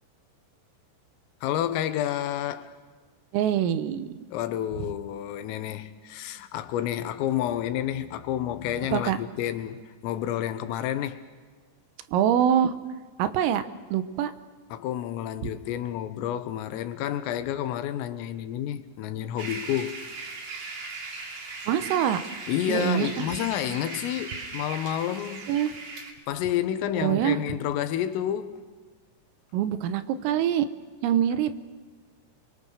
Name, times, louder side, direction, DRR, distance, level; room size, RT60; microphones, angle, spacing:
voice 1, 1.4-2.7 4.3-11.2 14.7-20.0 22.5-25.5 26.3-28.6, left 11 dB, 85° left, 3.8 m, -30 dB
voice 2, 3.3-4.3 8.9-9.2 12.1-12.8 13.2-13.6 13.9-14.3 15.4-15.5 21.7-22.2 22.7-23.3 25.5-25.7 27.0-27.4 29.5-30.7 31.0-31.5, right 10 dB, 85° right, 3.7 m, -24 dB
sound 1, 19.4-26.1, right 3 dB, 45° right, 3.3 m, -38 dB
29.0 x 23.5 x 6.5 m
omnidirectional pair, 5.9 m